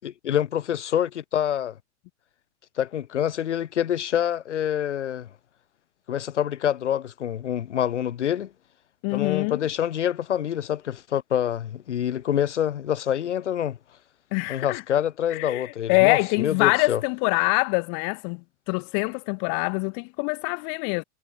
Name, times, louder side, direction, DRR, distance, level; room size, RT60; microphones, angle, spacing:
voice 1, 0.0-1.8 2.8-5.3 6.1-8.5 9.1-13.8 14.5-17.0, left 10 dB, 85° left, 6.7 m, -26 dB
voice 2, 9.0-9.6 14.3-14.8 15.3-18.4 18.7-21.0, left 40 dB or more, 30° left, 3.2 m, -24 dB
supercardioid pair, 170°, 34 cm